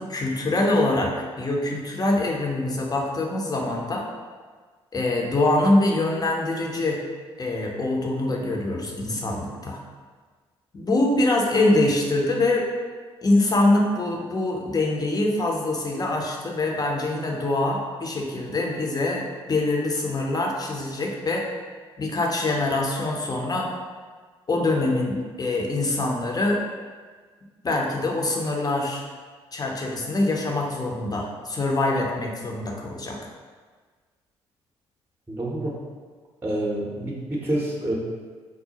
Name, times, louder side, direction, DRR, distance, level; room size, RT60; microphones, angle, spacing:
voice 1, 0.0-4.1 4.9-7.0 7.4-9.8 10.7-12.7 13.2-21.5 22.0-23.7 24.5-26.6 27.6-29.0 29.5-33.2, left 2 dB, 25° left, -1 dB, 0.7 m, -24 dB
voice 2, 35.3-35.8 36.4-37.9, right 1 dB, 15° right, -4 dB, 0.8 m, -27 dB
4.7 x 2.0 x 2.8 m, 1.5 s
hypercardioid pair, 45°, 14 cm